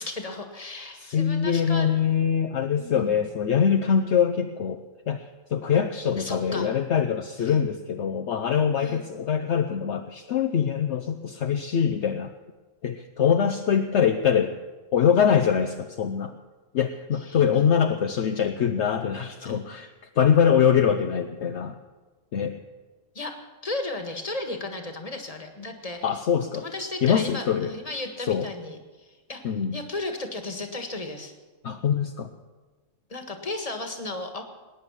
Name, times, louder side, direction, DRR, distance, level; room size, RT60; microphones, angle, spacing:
voice 1, 0.0-1.9 2.8-3.3 6.2-6.7 7.4-7.6 8.8-9.2 17.2-17.7 19.4-19.6 23.1-23.4 23.6-26.2 26.5-29.4 29.7-31.3 33.1-34.4, left 2 dB, 30° left, 5 dB, 1.7 m, -35 dB
voice 2, 1.0-5.2 5.5-12.3 12.8-14.5 14.9-16.3 16.7-19.9 20.2-21.8 22.3-22.6 26.0-26.6 27.0-27.7 28.3-28.5 29.4-29.8 31.6-32.3, left 7 dB, 65° left, 6 dB, 1.0 m, -23 dB
19.5 x 9.6 x 7.4 m, 1.3 s
omnidirectional pair, 1.3 m